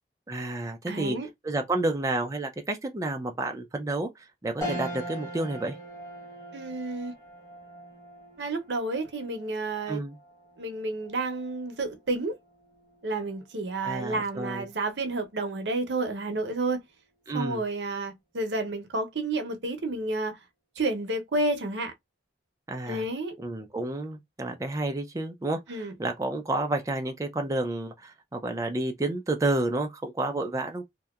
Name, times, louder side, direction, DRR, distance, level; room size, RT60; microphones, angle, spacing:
voice 1, 0.3-1.2 1.4-5.8 9.9-10.2 13.8-14.7 17.3-17.6 22.7-23.0 23.4-30.8, right 2 dB, 20° right, 0.4 m, -30 dB
voice 2, 0.9-1.3 6.5-7.1 8.4-10.0 10.6-12.4 13.0-16.8 17.3-20.4 20.8-21.9 22.9-23.4 25.7-25.9, right 2 dB, 80° right, 0.7 m, -30 dB
sound 1, 4.6-14.2 14.7-14.8 16.1-16.6, equal, 20° left, 1.0 m, -42 dB
2.7 x 2.1 x 2.3 m
head